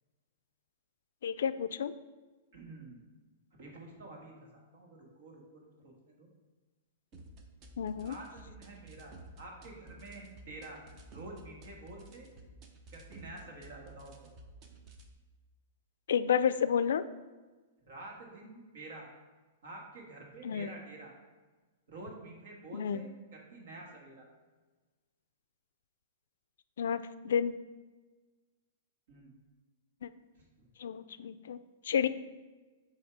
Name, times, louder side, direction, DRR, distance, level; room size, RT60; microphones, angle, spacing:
voice 1, 1.2-1.9 7.8-8.1 16.1-17.0 20.4-20.7 22.7-23.0 26.8-27.5 30.0-30.1 30.8-31.6 31.8-32.1, left 8 dB, 80° left, 14 dB, 0.3 m, -30 dB
voice 2, 2.5-3.0 3.5-6.3 8.0-10.8 11.1-12.3 12.9-14.1 17.8-19.1 19.6-21.1 21.9-24.3 29.1-29.3 30.3-30.4, right 2 dB, 70° right, 0 dB, 1.6 m, -49 dB
sound 1, 7.1-15.1, right 2 dB, 30° right, 0.6 m, -53 dB
7.2 x 2.8 x 4.7 m, 1.3 s
hypercardioid pair, 155°, 0 cm